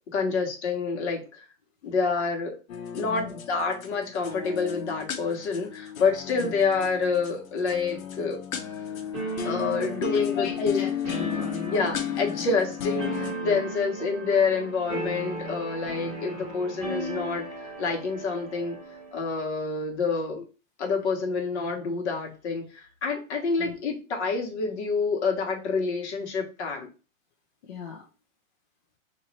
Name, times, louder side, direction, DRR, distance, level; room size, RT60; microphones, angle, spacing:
voice 1, 0.1-1.5 1.8-2.6 2.9-8.4 9.4-10.9 11.7-17.5 17.8-18.8 19.1-20.4 20.8-26.9, left 4 dB, 55° left, 1 dB, 1.3 m, -27 dB
sound 1, 2.7-13.3, left 9 dB, 85° left, 0.9 m, -34 dB
voice 2, 3.0-3.3 6.4-6.5 10.0-12.0 13.4-13.6 16.3-16.5 20.3-20.5 23.5-23.8 27.6-28.1, left 7 dB, 35° left, -1 dB, 0.6 m, -38 dB
sound 2, 9.1-19.2, right 2 dB, 15° right, 1.3 m, -37 dB
3.1 x 2.7 x 4.1 m, 0.34 s
hypercardioid pair, 165°, 40 cm